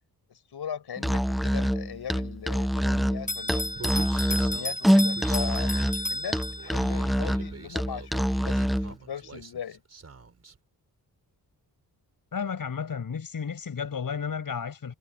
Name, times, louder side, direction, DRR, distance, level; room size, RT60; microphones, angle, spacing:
voice 1, 0.3-3.7 4.3-5.7 6.1-9.8, left 8 dB, 80° left, 7.1 m, -39 dB
Musical instrument, 1.0-8.9, equal, ahead, 0.4 m, -25 dB
Bell, 3.3-7.0, left 1 dB, 20° left, 5.9 m, -33 dB
Human voice, 3.7-10.6, right 5 dB, 40° right, 4.2 m, -45 dB
voice 2, 12.3-14.9, left 6 dB, 60° left, 6.3 m, -32 dB
wide cardioid pair, 130°, 38 cm